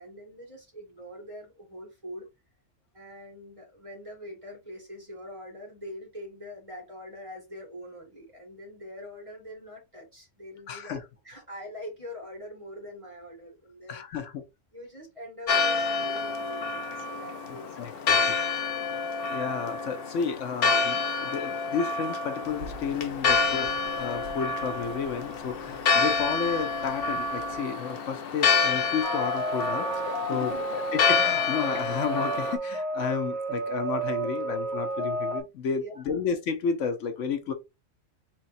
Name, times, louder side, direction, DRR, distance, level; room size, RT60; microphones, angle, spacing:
voice 1, 0.0-2.3 2.9-14.3 14.7-18.7 30.3-30.8 35.8-36.2, equal, 25° right, 1.9 m, -44 dB
voice 2, 10.7-11.0 13.9-14.4 17.8-18.2 19.3-30.5 30.9-37.5, left 6 dB, 75° left, 1.1 m, -32 dB
Church bell, 15.5-32.6, left 4 dB, 55° left, 0.7 m, -28 dB
sound 1, 22.4-27.6, right 2 dB, 65° right, 1.0 m, -47 dB
sound 2, 29.0-35.4, right 1 dB, 15° left, 1.6 m, -31 dB
4.4 x 3.5 x 2.6 m
omnidirectional pair, 1.3 m